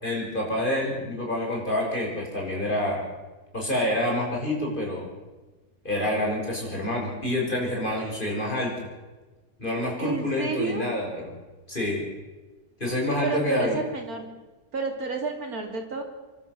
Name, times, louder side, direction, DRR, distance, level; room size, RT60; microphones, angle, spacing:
voice 1, 0.0-3.1 3.5-5.1 5.8-8.7 9.6-11.1 11.7-12.0 12.8-13.8, left 1 dB, 30° left, -2 dB, 6.3 m, -27 dB
voice 2, 10.0-10.9 13.2-14.3 14.7-16.0, right 4 dB, 65° right, 2 dB, 3.6 m, -30 dB
26.0 x 12.5 x 8.1 m, 1.2 s
omnidirectional pair, 1.7 m